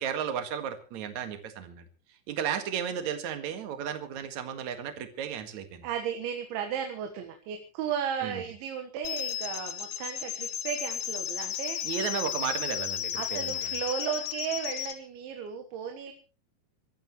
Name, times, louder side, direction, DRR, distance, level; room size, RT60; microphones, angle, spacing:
voice 1, 0.0-1.9 2.3-5.9 8.2-8.4 11.8-13.6, right 8 dB, 50° right, 8 dB, 2.5 m, -34 dB
voice 2, 5.8-11.8 13.2-16.1, right 8 dB, 80° right, 5 dB, 3.8 m, -35 dB
sound 1, 9.0-15.0, left 11 dB, 65° left, 2.3 m, -34 dB
27.5 x 14.0 x 3.1 m, 0.33 s
omnidirectional pair, 5.3 m